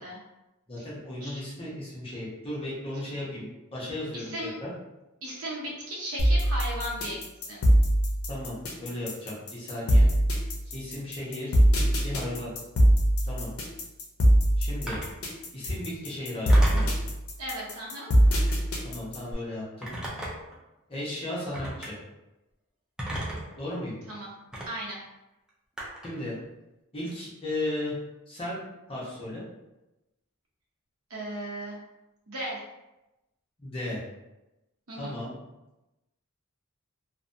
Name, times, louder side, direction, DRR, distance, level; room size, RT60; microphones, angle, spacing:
voice 1, 0.7-4.7 8.3-10.1 10.7-12.5 13.2-13.5 14.6-15.0 15.5-16.9 18.8-19.9 20.9-22.0 23.6-23.9 26.0-26.4 26.9-27.9 28.3-28.6 28.9-29.4 33.6-34.0 35.0-35.3, left 1 dB, 25° left, -6 dB, 0.8 m, -35 dB
voice 2, 4.1-4.5 5.2-7.6 17.4-18.1 24.1-24.3 24.7-25.0 31.1-31.8 32.3-32.6 34.9-35.2, right 1 dB, 85° right, -4 dB, 0.8 m, -36 dB
sound 1, 6.2-19.3, equal, 75° left, 0.5 m, -22 dB
Telephone, 14.9-15.2 16.5-17.0 18.3-18.6 19.8-20.6 21.5-21.9 23.0-23.5 24.5-24.7 25.8-26.2, right 1 dB, 5° right, 0.4 m, -34 dB
2.5 x 2.1 x 2.6 m, 0.98 s
head